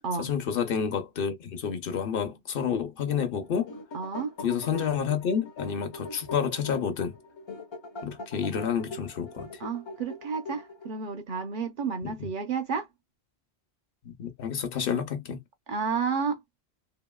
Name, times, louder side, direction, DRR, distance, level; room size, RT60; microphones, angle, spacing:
voice 1, 0.2-3.8 4.4-7.1 8.0-9.5 14.0-15.4, left 7 dB, 65° left, 0.8 m, -29 dB
sound 1, 3.4-11.0, left 2 dB, 40° left, 0.4 m, -42 dB
voice 2, 3.9-4.3 9.6-12.9 15.7-16.4, right 5 dB, 60° right, 0.7 m, -31 dB
2.8 x 2.6 x 2.2 m
omnidirectional pair, 1.0 m